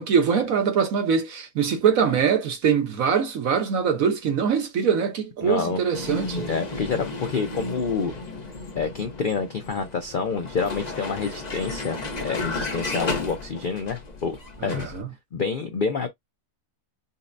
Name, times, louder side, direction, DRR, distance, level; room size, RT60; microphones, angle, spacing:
voice 1, 0.0-6.5 14.6-15.1, right 7 dB, 60° right, 1.3 m, -23 dB
voice 2, 5.4-5.8 6.5-8.1 8.7-14.9 15.3-16.1, left 5 dB, 75° left, 0.4 m, -28 dB
Vehicle, 5.9-15.0, left 3 dB, 40° left, 0.7 m, -33 dB
5.5 x 2.0 x 2.6 m
omnidirectional pair, 1.7 m